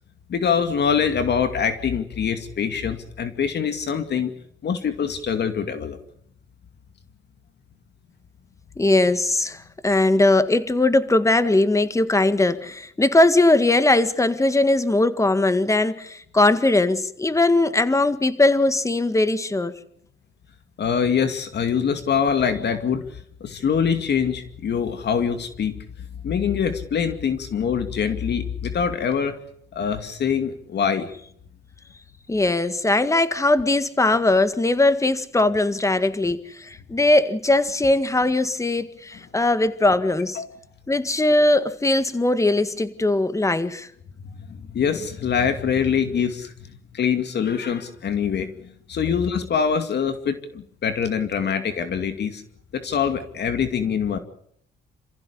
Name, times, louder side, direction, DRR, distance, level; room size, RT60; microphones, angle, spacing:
voice 1, 0.3-4.3 4.6-6.0 20.8-25.8 26.2-29.4 29.7-31.1 40.4-40.5 44.2-46.5 46.9-52.4 52.7-54.2, left 7 dB, 60° left, 8 dB, 2.4 m, -24 dB
voice 2, 8.8-19.7 32.3-40.4 40.9-43.9, left 2 dB, 15° left, 12 dB, 1.9 m, -20 dB
28.5 x 15.5 x 8.5 m, 0.69 s
cardioid pair, 90°, 20 cm